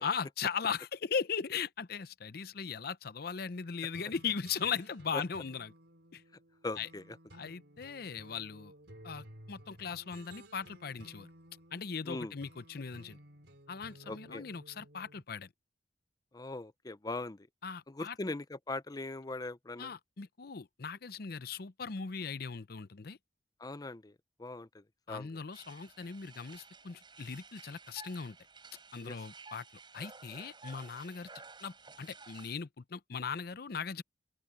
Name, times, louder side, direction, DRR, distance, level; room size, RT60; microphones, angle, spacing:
voice 1, 0.0-5.7 6.1-6.2 6.8-6.9 7.3-8.7 9.0-11.3 11.7-13.2 13.7-15.5 17.6-18.2 19.8-23.2 25.1-28.4 28.9-29.6 29.9-31.3 31.6-34.0, left 6 dB, 60° left, 0.7 m, -38 dB
sound 1, 3.9-15.2, right 1 dB, 75° right, 4.3 m, -56 dB
voice 2, 6.6-7.0 12.1-12.3 14.1-14.4 16.3-17.5 17.9-19.9 23.6-25.3 29.0-29.2, left 2 dB, 20° left, 0.6 m, -40 dB
sound 2, 25.5-32.6, right 4 dB, 25° right, 5.9 m, -54 dB
open air
head